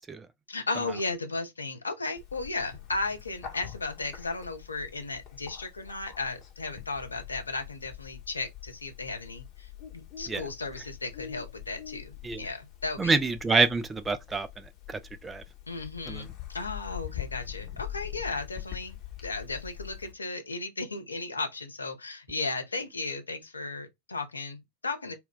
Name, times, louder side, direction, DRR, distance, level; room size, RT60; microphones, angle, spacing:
voice 1, 0.5-13.2 13.5-13.6 15.7-25.1, left 3 dB, 75° left, 0.5 m, -35 dB
Bird, 2.2-20.1, left 12 dB, 35° left, 0.8 m, -44 dB
voice 2, 13.0-15.4 16.1-16.2, right 4 dB, 15° right, 0.4 m, -27 dB
2.2 x 2.1 x 3.8 m
figure-of-eight pair, 90°, 0 cm